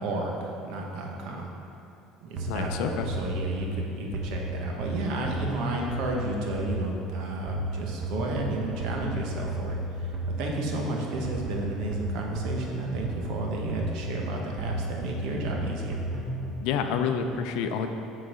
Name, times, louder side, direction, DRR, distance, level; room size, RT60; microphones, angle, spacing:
voice 1, 0.0-1.5 2.2-10.1 10.4-16.0, right 2 dB, 65° right, 0 dB, 1.0 m, -32 dB
voice 2, 2.4-3.1 16.6-17.9, left 7 dB, 70° left, 7 dB, 0.5 m, -28 dB
sound 1, 2.4-16.6, right 1 dB, 35° right, 0.8 m, -34 dB
7.8 x 3.9 x 4.9 m, 2.8 s
cardioid pair, 150°, 0 cm